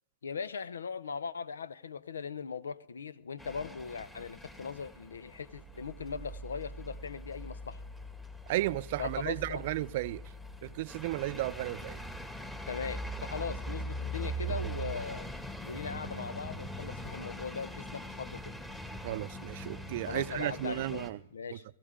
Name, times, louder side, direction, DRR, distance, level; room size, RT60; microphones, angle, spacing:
voice 1, 0.2-7.8 9.0-9.6 12.7-15.3 15.7-18.5 20.1-21.6, left 6 dB, 85° left, 0.7 m, -39 dB
sound 1, 3.4-21.1, right 1 dB, 10° left, 2.0 m, -42 dB
voice 2, 8.5-10.2 10.6-12.0 19.0-21.2, right 16 dB, 55° right, 0.6 m, -34 dB
24.0 x 14.5 x 3.7 m
hypercardioid pair, 125°, 0 cm